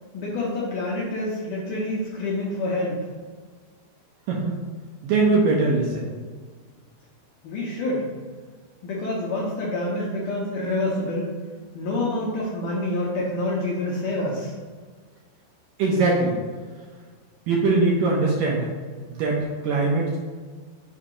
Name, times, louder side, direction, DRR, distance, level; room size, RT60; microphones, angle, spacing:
voice 1, 0.1-3.0 7.4-8.1 8.8-11.3 11.7-14.5, left 1 dB, 75° left, -6 dB, 2.0 m, -27 dB
voice 2, 5.0-6.2 15.8-16.3 17.5-18.7 19.1-20.2, right 3 dB, 75° right, -4 dB, 2.1 m, -21 dB
7.0 x 2.8 x 4.9 m, 1.5 s
omnidirectional pair, 4.7 m